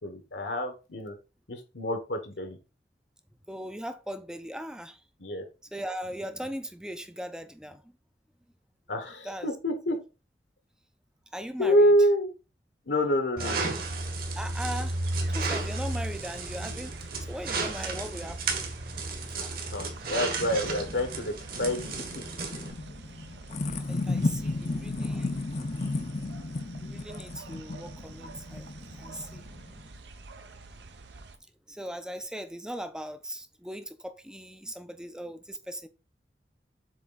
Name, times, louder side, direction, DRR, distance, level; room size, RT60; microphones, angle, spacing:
voice 1, 0.0-1.2 1.5-2.6 5.2-5.4 8.9-10.0 11.6-12.3 12.9-13.8 19.7-21.3 21.6-22.2, equal, 75° left, 1.3 m, -27 dB
voice 2, 3.5-5.0 5.7-7.9 9.2-9.6 9.9-10.0 11.3-11.9 14.4-15.0 15.3-18.6 19.4-19.5 23.8-25.6 26.8-28.7 29.0-29.5 31.7-35.9, equal, 5° right, 0.5 m, -39 dB
sound 1, 13.4-22.7, right 3 dB, 55° right, 1.6 m, -33 dB
sound 2, 13.8-31.4, right 3 dB, 70° right, 0.8 m, -47 dB
sound 3, 19.8-29.9, left 2 dB, 40° left, 0.6 m, -34 dB
7.5 x 3.5 x 4.0 m
head